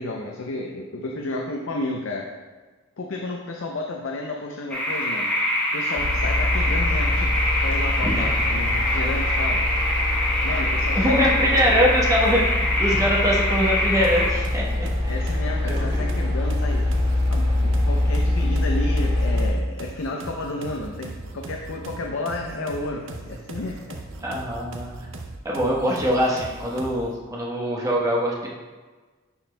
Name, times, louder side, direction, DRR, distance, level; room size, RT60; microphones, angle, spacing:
voice 1, 0.0-2.3 3.0-5.3 5.7-9.6 10.4-11.8 15.1-16.8 17.3-24.0, left 2 dB, 70° left, 1 dB, 0.5 m, -32 dB
sound 1, 4.7-14.3, left 1 dB, 5° left, 1.1 m, -24 dB
sound 2, 6.0-19.5, left 1 dB, 40° right, 2.0 m, -24 dB
voice 2, 8.0-8.4 10.9-15.1 15.7-16.1 24.2-24.9 25.4-28.5, equal, 15° right, -4 dB, 1.1 m, -23 dB
sound 3, 14.0-27.2, right 2 dB, 70° right, 0.6 m, -38 dB
11.0 x 4.2 x 2.2 m, 1.3 s
head